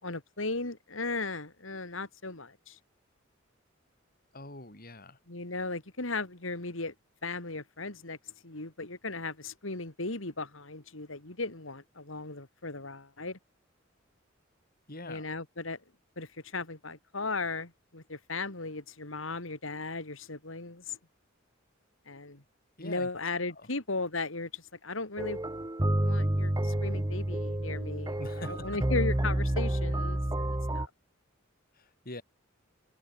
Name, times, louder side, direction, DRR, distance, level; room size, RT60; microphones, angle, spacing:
voice 1, 0.0-2.8 5.3-6.9 7.2-13.4 15.1-15.8 16.2-21.0 22.1-22.4 22.8-25.4 26.0-30.9, left 3 dB, 75° left, 3.2 m, -36 dB
voice 2, 4.3-5.2 14.9-15.3 22.8-23.1 23.6-23.7 28.1-28.8 31.7-32.2, left 2 dB, 45° left, 5.9 m, -44 dB
sound 1, 25.2-30.9, right 1 dB, 20° right, 1.1 m, -29 dB
head